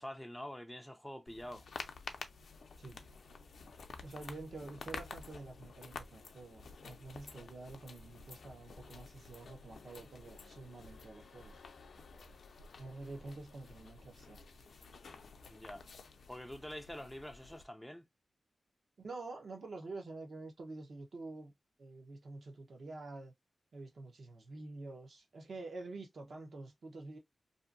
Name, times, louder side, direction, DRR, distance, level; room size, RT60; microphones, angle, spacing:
voice 1, 0.0-1.7 15.5-15.9 16.3-18.0, equal, ahead, 0.3 m, -46 dB
sound 1, 1.3-17.6, left 4 dB, 70° left, 0.4 m, -51 dB
voice 2, 4.0-11.5 12.8-14.4 19.0-21.5 21.8-23.3 23.7-27.2, right 3 dB, 60° right, 0.7 m, -48 dB
2.6 x 2.5 x 2.4 m
wide cardioid pair, 140°, 0 cm